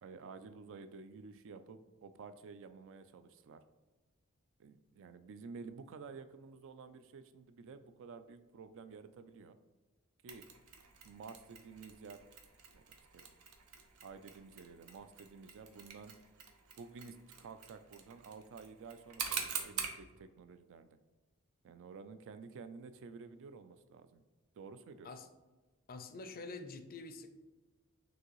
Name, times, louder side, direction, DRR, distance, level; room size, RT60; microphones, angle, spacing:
voice 1, 0.0-3.6 4.6-9.6 10.2-10.4 11.0-12.3 12.7-12.8 13.1-13.2 14.0-16.1 16.8-21.0 21.6-24.2 24.5-25.1, right 5 dB, 65° right, 10 dB, 0.4 m, -51 dB
Mechanisms, 10.3-20.0, right 6 dB, 85° right, 0.7 m, -46 dB
voice 2, 25.9-27.3, left 3 dB, 45° left, 8 dB, 0.4 m, -46 dB
6.2 x 2.7 x 3.0 m, 1.2 s
head